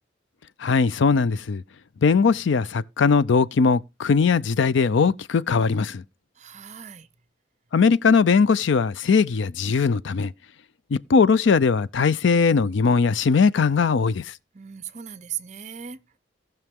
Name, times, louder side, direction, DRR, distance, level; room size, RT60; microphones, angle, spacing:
voice 1, 0.6-1.6 2.0-6.0 7.7-10.3 10.9-14.3, left 5 dB, 75° left, 0.4 m, -20 dB
voice 2, 6.4-7.1 14.5-16.0, right 9 dB, 35° right, 0.6 m, -37 dB
17.5 x 5.9 x 3.6 m
head